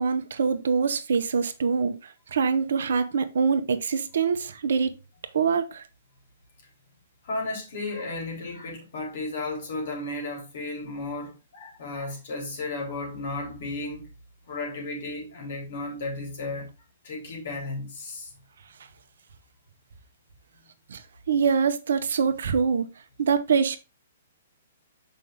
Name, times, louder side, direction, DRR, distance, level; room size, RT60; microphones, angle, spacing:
voice 1, 0.0-1.9 2.3-5.0 5.3-5.8 20.9-21.0 21.3-22.9 23.2-23.8, right 6 dB, 75° right, 0.9 m, -24 dB
voice 2, 7.2-14.1 14.5-16.7 17.0-18.3, left 2 dB, 65° left, 3.7 m, -34 dB
6.4 x 5.3 x 3.5 m
hypercardioid pair, 135°, 0 cm